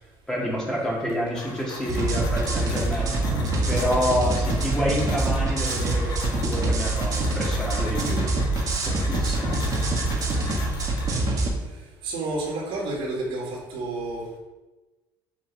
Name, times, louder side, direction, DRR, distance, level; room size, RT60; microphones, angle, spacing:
voice 1, 0.3-3.1 3.7-8.2 8.9-9.5, equal, 5° left, -5 dB, 2.4 m, -28 dB
sound 1, 0.9-11.5, left 3 dB, 55° left, 2.0 m, -39 dB
sound 2, 1.9-11.5, right 2 dB, 40° right, 1.7 m, -25 dB
voice 2, 12.0-14.4, right 2 dB, 70° right, -2 dB, 2.6 m, -30 dB
6.4 x 6.4 x 4.8 m, 1.2 s
cardioid pair, 125°, 10 cm